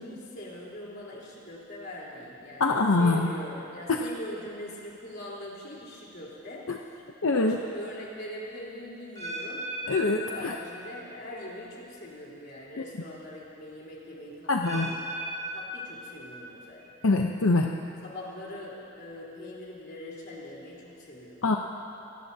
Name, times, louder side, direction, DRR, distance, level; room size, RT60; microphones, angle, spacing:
voice 1, 0.0-6.7 7.3-9.7 10.1-15.3 15.5-16.9 18.0-21.4, left 1 dB, 50° left, -5 dB, 3.9 m, -42 dB
voice 2, 2.6-3.3 3.9-4.0 6.7-6.8 7.2-7.6 9.9-10.6 14.5-14.9 17.0-17.7 21.4-21.6, left 3 dB, 85° left, 2 dB, 0.8 m, -24 dB
sound 1, 9.2-11.2 11.4-11.9 12.5-12.6 14.6-16.6 16.9-17.4 18.0-18.1, right 1 dB, 20° left, 3.8 m, -38 dB
26.0 x 20.0 x 2.8 m, 2.8 s
head